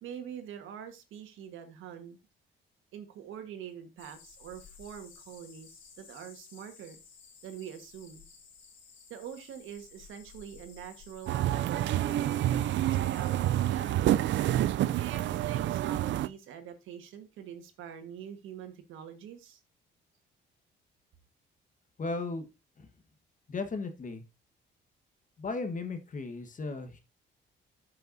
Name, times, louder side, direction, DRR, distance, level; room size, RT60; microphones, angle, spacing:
voice 1, 0.0-2.2 2.9-7.0 7.4-8.3 9.1-14.1 15.0-19.6, right 9 dB, 85° right, 1.5 m, -44 dB
sound 1, 4.0-13.7, left 5 dB, 75° left, 2.9 m, -55 dB
sound 2, 11.3-16.3, right 13 dB, 70° right, 0.4 m, -28 dB
voice 2, 22.0-22.5 22.8-22.9 23.5-24.2 25.4-27.0, left 3 dB, 40° left, 1.4 m, -36 dB
13.0 x 5.6 x 2.7 m
cardioid pair, 90°, 20 cm